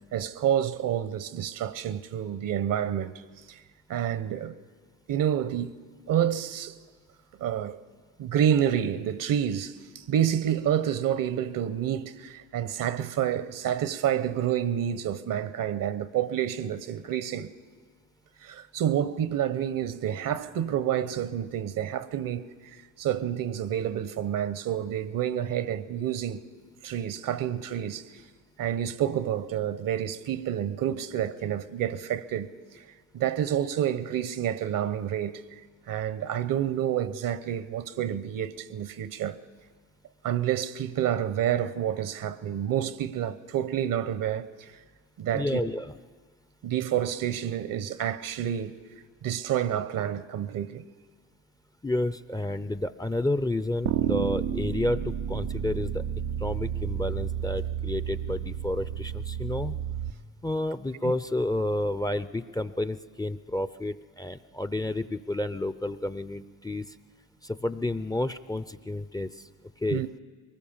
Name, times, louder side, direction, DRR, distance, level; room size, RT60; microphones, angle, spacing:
voice 1, 0.1-3.1 3.5-3.6 3.9-4.6 5.1-5.8 6.1-6.7 7.4-7.8 8.2-17.5 18.4-22.5 23.0-26.4 26.8-28.0 28.6-32.5 32.7-32.8 33.1-35.4 35.9-39.4 40.2-44.7 45.2-45.7 46.6-48.8 49.2-50.8 69.9-70.1, right 10 dB, 60° right, 1.0 m, -28 dB
voice 2, 45.3-46.0 51.8-56.0 56.4-59.8 60.4-67.0 67.4-69.5 69.8-70.0, left 1 dB, 10° left, 0.6 m, -30 dB
sound 1, 53.9-60.1, right 9 dB, 85° right, 0.9 m, -31 dB
22.5 x 19.0 x 7.3 m
supercardioid pair, 65°, 37 cm